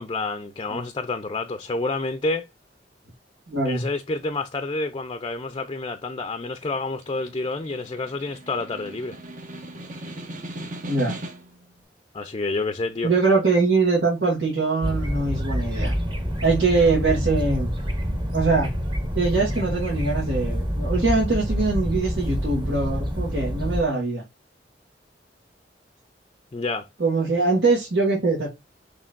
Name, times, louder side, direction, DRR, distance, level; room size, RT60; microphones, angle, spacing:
voice 1, 0.0-2.4 3.6-9.2 12.1-13.1 26.5-26.9, left 3 dB, 30° left, 0.5 m, -29 dB
voice 2, 3.5-3.8 10.9-11.1 13.0-15.9 16.4-17.7 18.3-18.7 19.1-24.2 27.0-28.5, right 3 dB, 75° right, 2.3 m, -22 dB
Snare drum, 6.7-11.6, right 1 dB, 45° right, 1.2 m, -38 dB
sound 1, 14.8-23.8, equal, 30° right, 1.5 m, -27 dB
6.4 x 3.2 x 2.5 m
head